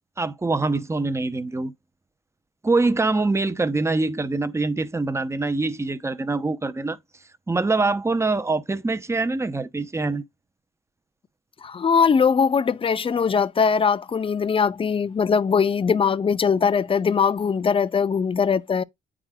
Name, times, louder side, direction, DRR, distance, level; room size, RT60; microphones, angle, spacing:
voice 1, 0.2-1.7 2.6-7.0 7.5-10.2, right 3 dB, 15° right, 0.7 m, -24 dB
voice 2, 11.6-18.8, left 6 dB, 25° left, 0.5 m, -21 dB
8.6 x 4.9 x 2.2 m
cardioid pair, 90°, 20 cm